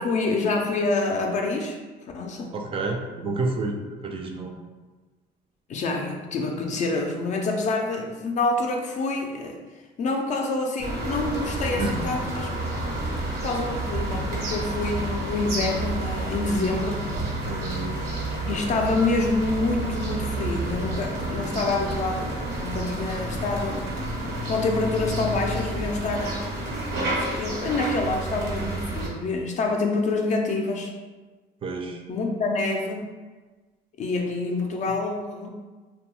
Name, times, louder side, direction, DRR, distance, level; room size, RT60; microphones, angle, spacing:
voice 1, 0.0-1.8 2.1-2.5 5.7-9.6 10.0-12.5 12.8-13.0 13.4-17.1 18.5-22.3 22.6-23.9 24.5-26.4 27.1-30.9 32.1-33.0 34.0-35.5, left 3 dB, 45° left, 2 dB, 0.4 m, -27 dB
voice 2, 2.5-3.8 4.0-4.5 11.8-12.0 17.4-18.0 31.6-32.0, right 3 dB, 35° right, 3 dB, 0.4 m, -29 dB
sound 1, 10.8-29.1, right 1 dB, 80° right, 1.0 m, -30 dB
2.6 x 2.2 x 2.9 m, 1.3 s
cardioid pair, 110°, 17 cm